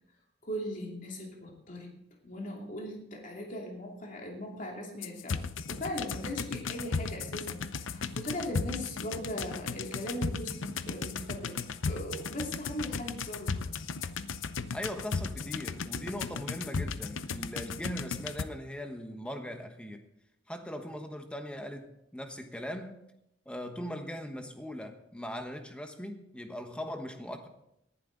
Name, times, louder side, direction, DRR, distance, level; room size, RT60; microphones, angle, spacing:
voice 1, 0.4-1.9 2.2-11.6 11.9-13.9, equal, 40° left, 0 dB, 2.7 m, -39 dB
sound 1, 5.0-18.4, left 5 dB, 85° left, 0.7 m, -36 dB
voice 2, 14.7-20.1 20.5-23.0 23.5-27.5, equal, 5° left, 6 dB, 1.2 m, -40 dB
18.5 x 11.0 x 4.0 m, 0.81 s
head